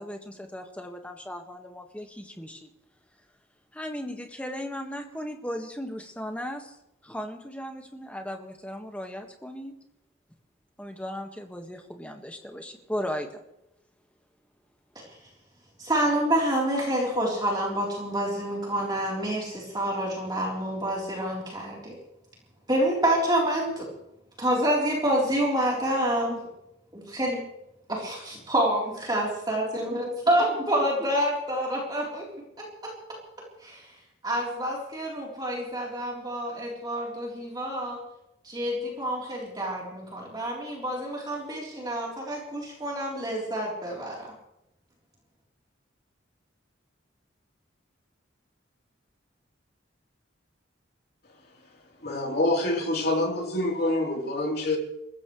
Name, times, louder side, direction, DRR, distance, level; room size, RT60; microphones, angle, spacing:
voice 1, 0.0-2.7 3.7-6.7 7.0-9.7 10.8-13.4, equal, 5° left, 1.7 m, -36 dB
voice 2, 15.8-22.0 22.7-23.9 24.4-26.4 26.9-27.4 27.9-32.3 32.6-32.9 33.6-33.8 34.2-38.0 38.4-44.3, right 1 dB, 20° right, 3.8 m, -27 dB
voice 3, 52.0-54.8, left 1 dB, 55° left, 3.6 m, -26 dB
28.0 x 15.0 x 3.3 m
head